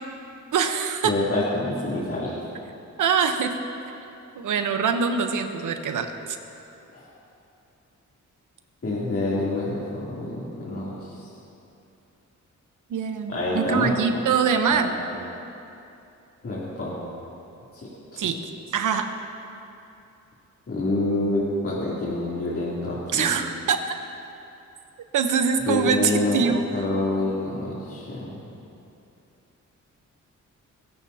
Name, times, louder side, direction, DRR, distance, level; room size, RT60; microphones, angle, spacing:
voice 1, 0.5-1.1 3.0-3.5 4.3-6.4 12.9-14.9 18.2-18.4 18.7-19.1 23.1-23.8 25.1-26.6, right 6 dB, 90° right, 6 dB, 1.1 m, -23 dB
voice 2, 1.0-2.4 6.9-7.1 8.8-11.1 13.3-13.9 14.7-14.9 16.4-16.9 18.1-18.3 20.7-23.3 25.7-28.4, left 2 dB, 45° left, -8 dB, 3.2 m, -27 dB
22.0 x 16.0 x 2.9 m, 2.8 s
cardioid pair, 95°, 30 cm